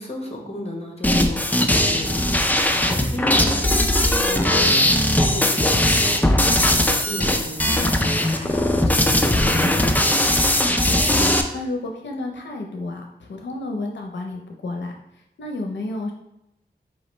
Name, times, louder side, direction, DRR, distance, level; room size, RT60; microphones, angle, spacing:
voice 1, 0.0-7.9 8.3-10.0, left 1 dB, 35° left, 0 dB, 1.0 m, -34 dB
sound 1, 1.0-11.4, left 1 dB, 10° left, 0.4 m, -19 dB
voice 2, 10.8-16.1, left 2 dB, 85° left, 2 dB, 0.5 m, -31 dB
4.8 x 3.0 x 3.1 m, 0.85 s
wide cardioid pair, 90°, 18 cm